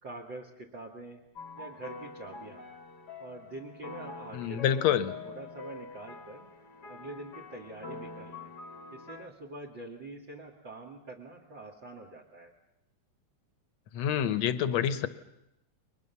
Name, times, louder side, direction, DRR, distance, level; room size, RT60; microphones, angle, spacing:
voice 1, 0.0-1.2 1.6-2.7 3.2-4.9 5.2-6.5 6.8-8.5 8.9-12.5, right 2 dB, 40° right, 4 dB, 2.5 m, -45 dB
sound 1, 1.4-9.3, left 3 dB, 45° left, 1.7 m, -45 dB
voice 2, 4.3-5.1 13.9-15.1, left 9 dB, 70° left, 13 dB, 2.2 m, -27 dB
30.0 x 23.0 x 7.0 m, 0.82 s
omnidirectional pair, 3.3 m